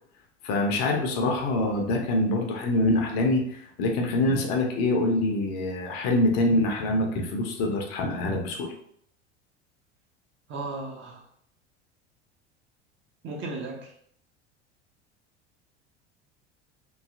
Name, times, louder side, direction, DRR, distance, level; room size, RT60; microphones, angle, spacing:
voice 1, 0.4-8.7, left 2 dB, 45° left, 2 dB, 0.7 m, -25 dB
voice 2, 10.5-11.2 13.2-13.9, right 3 dB, 35° right, 1 dB, 0.7 m, -35 dB
3.1 x 2.7 x 2.5 m, 0.68 s
figure-of-eight pair, 75°, 35 cm